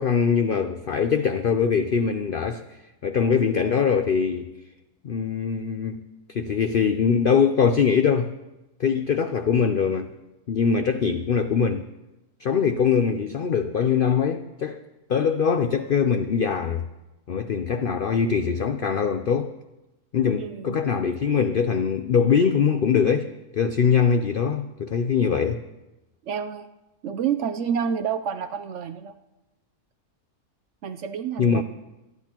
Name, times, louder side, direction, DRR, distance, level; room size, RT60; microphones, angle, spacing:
voice 1, 0.0-4.5 5.0-6.0 6.3-8.3 8.8-10.1 10.5-11.8 12.4-14.8 15.1-16.8 17.3-19.5 20.1-25.6 31.4-31.6, left 6 dB, 75° left, 0.5 m, -22 dB
voice 2, 20.4-20.8 26.2-26.7 27.0-29.1 30.8-31.6, right 7 dB, 65° right, 0.8 m, -28 dB
26.5 x 10.5 x 3.0 m
omnidirectional pair, 1.6 m